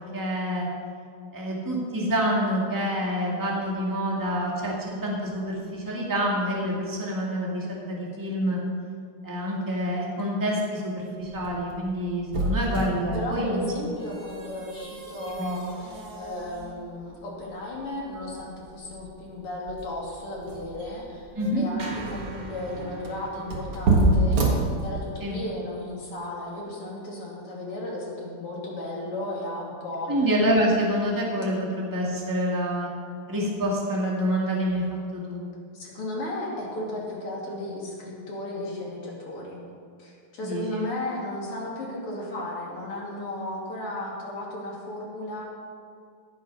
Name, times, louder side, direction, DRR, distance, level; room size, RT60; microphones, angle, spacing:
voice 1, 0.1-0.7 1.3-8.6 9.2-13.6 15.2-15.6 21.4-21.7 25.2-25.4 30.1-32.9 33.3-34.8 35.1-35.4 40.4-40.9, equal, 10° right, -3 dB, 1.9 m, -27 dB
sound 1, 11.2-25.4, right 2 dB, 90° right, 2.7 m, -29 dB
voice 2, 13.1-24.4 24.8-30.1 35.7-39.6 40.0-45.4, left 1 dB, 90° left, -4 dB, 3.4 m, -35 dB
sound 2, 21.8-26.1, right 3 dB, 45° right, 0.5 m, -43 dB
17.0 x 6.8 x 5.5 m, 2.3 s
omnidirectional pair, 2.4 m